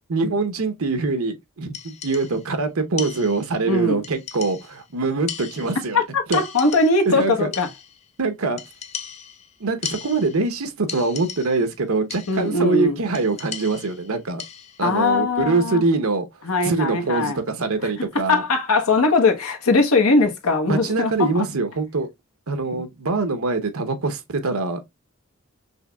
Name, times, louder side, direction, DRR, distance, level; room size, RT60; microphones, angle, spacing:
voice 1, 0.1-6.0 6.3-6.4 7.1-7.5 8.2-8.6 9.6-14.4 14.8-16.2 16.6-18.4 20.7-22.1 22.5-24.8, right 3 dB, 85° right, 0.9 m, -23 dB
sound 1, 1.7-2.5 3.0-3.7 4.0-4.9 5.3-6.0 6.3-7.2 7.5-8.1 8.6-10.5 10.9-11.7 12.1-12.6 13.1-14.9, left 8 dB, 30° left, 0.4 m, -37 dB
voice 2, 3.6-4.0 5.9-7.7 12.3-13.0 14.8-15.8 16.4-17.4 18.1-21.5 22.7-22.8, left 3 dB, 90° left, 1.1 m, -20 dB
5.5 x 3.1 x 2.2 m
head